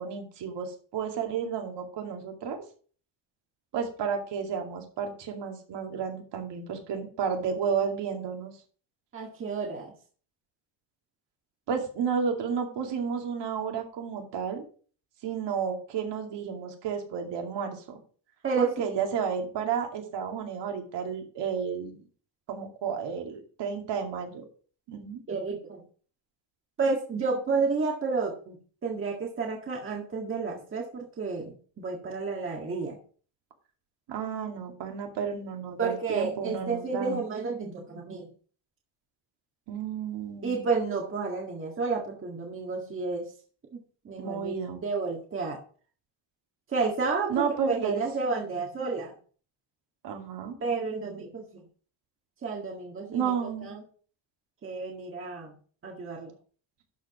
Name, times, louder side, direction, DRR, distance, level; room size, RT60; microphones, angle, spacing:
voice 1, 0.0-2.6 3.7-8.5 11.7-14.6 15.2-18.0 18.6-22.0 22.5-24.4 24.9-25.2 34.1-37.2 39.7-40.7 44.2-44.8 47.3-48.0 50.0-50.6 53.1-53.7, right 6 dB, 60° right, 3 dB, 2.4 m, -32 dB
voice 2, 9.1-9.9 18.4-18.7 25.3-25.8 26.8-28.6 28.8-33.0 35.8-38.3 40.4-43.3 43.7-44.5 44.8-45.6 46.7-49.1 50.6-51.6 52.4-53.3 53.6-53.8 54.6-55.5 55.8-56.3, right 4 dB, 25° right, -1 dB, 1.8 m, -31 dB
12.0 x 5.1 x 4.8 m, 0.43 s
cardioid pair, 170°, 48 cm